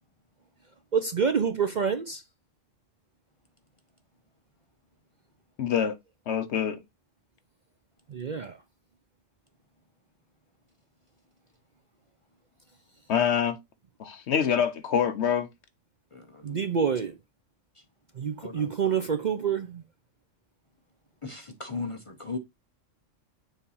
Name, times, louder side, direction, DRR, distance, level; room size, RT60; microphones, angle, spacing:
voice 1, 0.9-2.2 8.1-8.6 16.4-17.2 18.2-19.8, right 6 dB, 50° right, 0.6 m, -27 dB
voice 2, 5.6-6.0 6.3-6.8 13.1-13.6 14.0-15.5, left 8 dB, 65° left, 1.0 m, -25 dB
voice 3, 16.1-16.6 18.4-18.7 21.2-22.4, left 4 dB, 35° left, 0.5 m, -37 dB
7.1 x 2.8 x 5.5 m
omnidirectional pair, 1.3 m